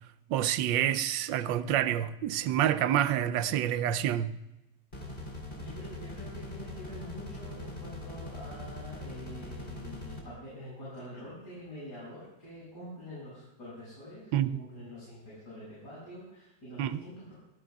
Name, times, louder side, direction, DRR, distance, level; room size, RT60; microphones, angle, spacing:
voice 1, 0.3-4.4 14.3-14.7 16.8-17.0, right 11 dB, 90° right, 1.3 m, -28 dB
sound 1, 4.9-10.2, left 1 dB, 25° left, 3.4 m, -41 dB
voice 2, 5.6-17.3, equal, 65° left, 7.4 m, -46 dB
24.5 x 16.0 x 2.3 m
omnidirectional pair, 1.9 m